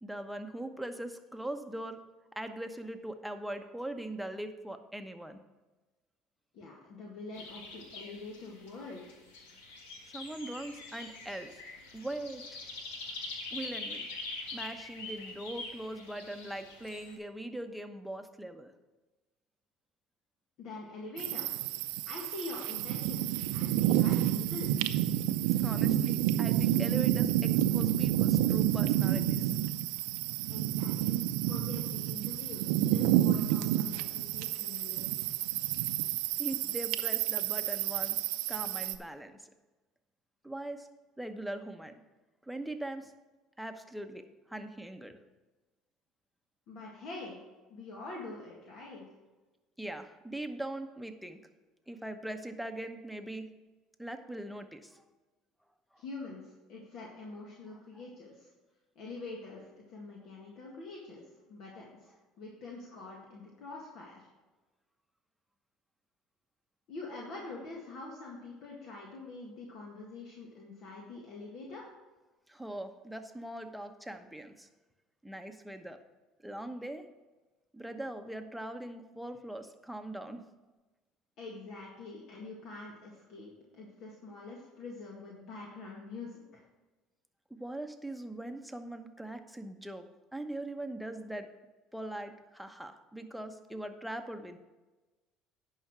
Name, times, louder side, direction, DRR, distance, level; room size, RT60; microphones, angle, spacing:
voice 1, 0.0-2.0 2.4-5.4 10.1-11.6 11.9-12.4 13.5-14.0 14.5-18.7 25.6-29.5 36.4-38.2 38.5-39.5 40.4-40.9 41.2-41.9 42.4-43.1 43.6-45.2 49.8-51.4 51.9-53.5 54.0-55.0 55.9-56.0 57.7-57.8 72.5-74.7 75.2-76.0 76.4-77.1 77.7-80.4 87.5-90.1 90.3-91.5 91.9-94.6, right 1 dB, ahead, 6 dB, 1.0 m, -41 dB
voice 2, 6.5-9.1 20.6-21.5 22.1-24.8 30.5-35.3 46.7-47.4 47.7-49.1 56.0-58.5 59.0-64.3 66.9-71.9 81.4-86.6, left 3 dB, 60° left, -3 dB, 1.9 m, -45 dB
sound 1, 7.3-17.2, left 3 dB, 90° left, 1.6 m, -44 dB
sound 2, 21.2-39.0, right 12 dB, 80° right, 0.5 m, -29 dB
10.0 x 5.6 x 6.2 m, 1.2 s
supercardioid pair, 85°, 0 cm